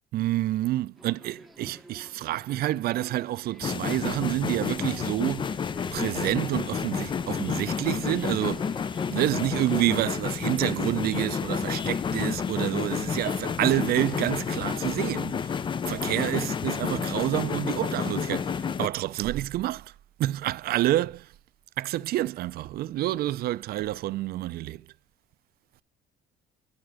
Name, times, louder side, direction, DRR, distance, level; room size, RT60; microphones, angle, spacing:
voice 1, 0.1-5.6 5.9-19.9 20.2-21.3 21.8-24.9, right 15 dB, 65° right, 0.5 m, -28 dB
Subway metro underground, 1.0-10.0, right 1 dB, ahead, 0.8 m, -49 dB
sound 1, 3.6-18.9, left 6 dB, 30° left, 0.4 m, -30 dB
11.5 x 4.4 x 5.0 m
cardioid pair, 110°, 17 cm